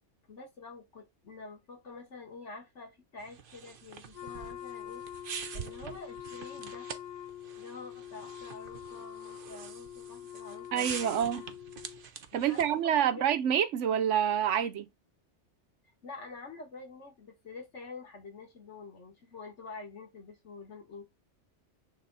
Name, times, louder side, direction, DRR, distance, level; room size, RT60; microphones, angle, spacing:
voice 1, 0.3-5.0 5.5-6.9 7.6-11.3 12.3-13.3 15.8-21.0, left 3 dB, 75° left, 2.0 m, -47 dB
sound 1, 3.2-12.8, right 7 dB, 50° right, 0.9 m, -45 dB
Wind instrument woodwind instrument, 4.1-12.1, left 11 dB, 45° left, 0.7 m, -45 dB
voice 2, 10.7-11.4 12.3-14.9, right 9 dB, 80° right, 1.0 m, -27 dB
7.5 x 3.4 x 4.0 m
omnidirectional pair, 1.2 m